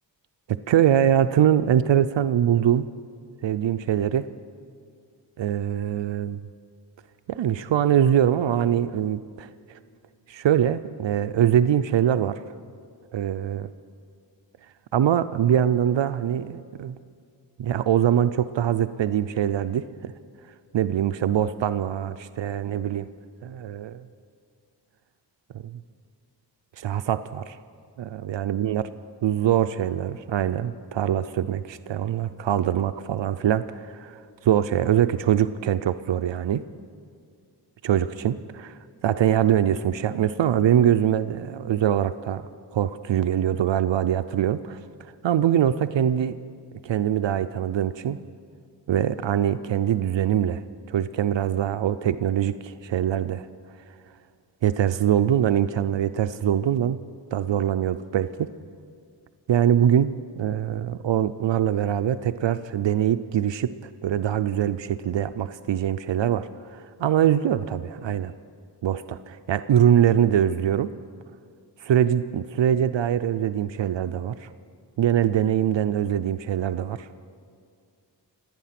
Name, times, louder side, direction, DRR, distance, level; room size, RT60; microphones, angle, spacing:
voice 1, 0.7-2.9 3.4-4.3 5.4-6.4 7.3-9.5 10.3-12.4 13.1-13.7 14.9-17.0 17.6-20.1 20.7-23.1 23.4-24.1 25.5-25.8 26.8-27.6 28.0-28.8 29.2-36.6 37.8-46.3 46.8-48.2 48.9-53.5 54.6-57.0 57.3-58.5 59.5-60.1 60.4-63.7 64.0-68.3 68.8-70.9 71.8-74.5 75.0-77.1, right 10 dB, 85° right, 12 dB, 0.5 m, -23 dB
26.0 x 9.1 x 5.8 m, 2.2 s
wide cardioid pair, 80°, 44 cm